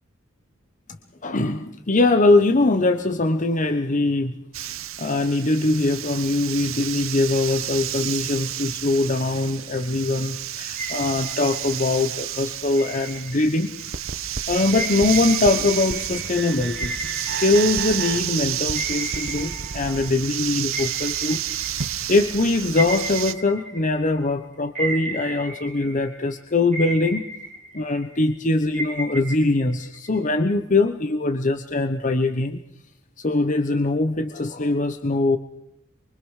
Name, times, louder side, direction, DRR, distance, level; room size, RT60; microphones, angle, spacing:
voice 1, 1.2-13.7 14.5-21.4 21.8-27.3 27.7-32.6 33.2-35.4, left 2 dB, 40° left, 7 dB, 1.0 m, -22 dB
sound 1, 4.5-23.3, right 12 dB, 85° right, 1.0 m, -31 dB
sound 2, 10.8-12.0 12.8-13.9 14.7-18.3 18.7-20.4 20.7-24.3 24.8-26.3 26.7-28.3 28.7-30.4, right 1 dB, 40° right, 4.1 m, -35 dB
sound 3, 13.9-20.1, right 4 dB, 55° right, 1.2 m, -34 dB
24.5 x 24.5 x 6.5 m, 0.74 s
head